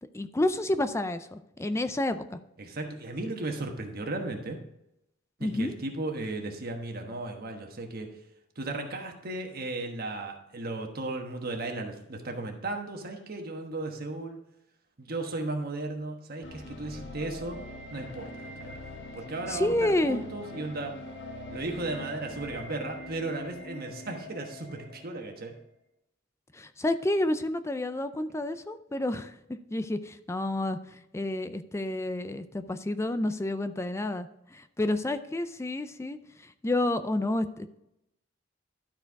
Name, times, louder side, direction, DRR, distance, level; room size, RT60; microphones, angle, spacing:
voice 1, 0.0-2.4 5.4-5.7 19.5-20.2 26.5-37.8, left 1 dB, 15° left, 11 dB, 0.4 m, -30 dB
voice 2, 2.6-4.6 5.4-8.1 8.6-14.4 15.0-17.6 17.9-18.7 19.1-21.0 21.5-25.5, right 2 dB, 50° right, 3 dB, 1.2 m, -35 dB
sound 1, 16.4-25.5, left 1 dB, 65° left, 1.3 m, -43 dB
12.5 x 4.5 x 4.7 m, 0.83 s
head